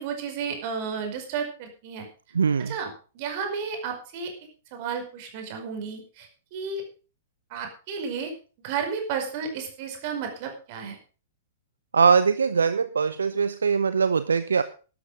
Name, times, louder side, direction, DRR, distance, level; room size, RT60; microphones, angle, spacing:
voice 1, 0.0-2.0 2.6-4.3 4.7-6.8 7.5-8.3 8.6-11.0, right 6 dB, 45° right, 4 dB, 5.0 m, -32 dB
voice 2, 2.3-2.7 11.9-14.6, right 5 dB, 70° right, 13 dB, 0.7 m, -21 dB
12.5 x 12.0 x 5.1 m, 0.36 s
figure-of-eight pair, 105°, 0 cm